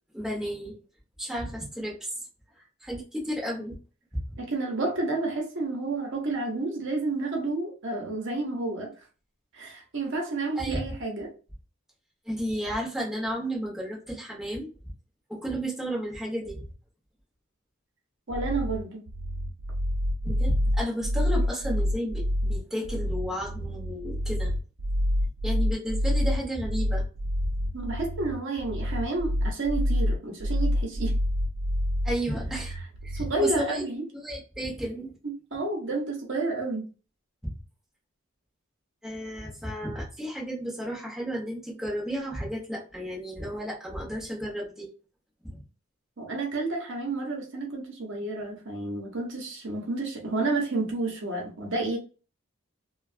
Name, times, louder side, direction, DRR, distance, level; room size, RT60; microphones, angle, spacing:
voice 1, 0.1-0.8 1.2-2.1 2.5-3.8 4.1-4.3 10.5-10.9 12.2-14.7 15.3-16.6 20.2-24.5 25.4-27.0 32.0-32.7 33.0-33.8 34.1-35.2 37.4-37.6 39.0-44.9 45.4-45.6, equal, ahead, -5 dB, 1.1 m, -33 dB
voice 2, 4.4-8.9 9.5-11.3 18.3-19.0 27.7-31.2 33.1-34.0 35.2-36.9 46.2-52.0, right 2 dB, 60° right, 1 dB, 0.9 m, -30 dB
sound 1, 18.3-33.3, equal, 85° right, 0.5 m, -27 dB
3.1 x 2.3 x 2.5 m, 0.35 s
head